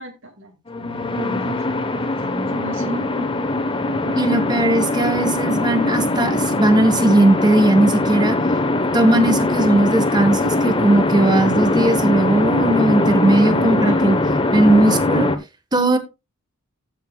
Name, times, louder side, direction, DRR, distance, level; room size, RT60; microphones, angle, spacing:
voice 1, 0.0-3.4 3.9-4.7 13.5-14.1, right 1 dB, 60° right, 2.4 m, -34 dB
sound 1, 0.7-15.4, left 2 dB, 25° left, 0.9 m, -21 dB
voice 2, 4.2-8.4 8.9-14.2 14.5-15.3 15.7-16.0, right 1 dB, 20° right, 1.2 m, -17 dB
15.0 x 6.4 x 2.3 m
head